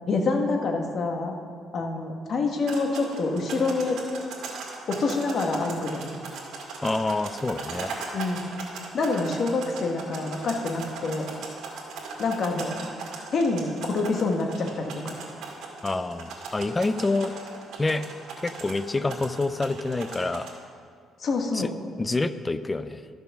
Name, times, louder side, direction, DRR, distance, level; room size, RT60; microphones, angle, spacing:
voice 1, 0.1-1.3 1.7-4.0 4.9-6.1 8.1-8.4 8.9-11.3 12.2-12.7 13.3-15.2 21.2-21.7, left 3 dB, 45° left, 3 dB, 1.3 m, -26 dB
sound 1, 2.6-20.5, right 4 dB, 75° right, 2.2 m, -39 dB
voice 2, 6.8-7.9 15.8-17.3 17.8-18.0 18.4-20.5 21.5-21.7 22.0-23.0, left 2 dB, 15° left, 12 dB, 0.4 m, -27 dB
13.0 x 7.0 x 5.9 m, 2.1 s
cardioid pair, 145°, 0 cm